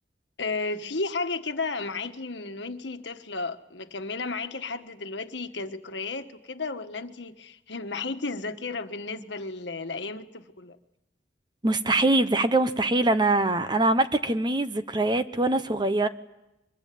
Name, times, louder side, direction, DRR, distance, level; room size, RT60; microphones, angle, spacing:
voice 1, 0.4-10.8, left 3 dB, 75° left, 8 dB, 1.5 m, -33 dB
voice 2, 11.6-16.1, right 2 dB, 25° right, 10 dB, 1.1 m, -23 dB
23.5 x 22.5 x 9.4 m, 0.91 s
head